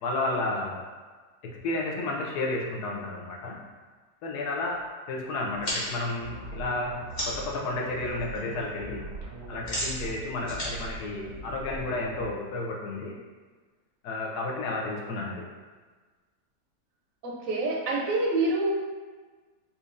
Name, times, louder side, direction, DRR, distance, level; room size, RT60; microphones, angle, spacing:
voice 1, 0.0-0.8 1.4-3.6 4.2-9.1 9.5-13.2 14.0-15.5, left 2 dB, 75° left, -1 dB, 1.1 m, -32 dB
sound 1, 5.5-7.6 7.9-8.4 8.6-11.9, equal, 35° left, 0.9 m, -36 dB
sound 2, 6.2-12.3, right 2 dB, 90° right, 1.3 m, -41 dB
voice 2, 17.2-18.7, right 2 dB, 70° right, -2 dB, 0.8 m, -26 dB
4.2 x 2.5 x 2.4 m, 1.4 s
omnidirectional pair, 1.8 m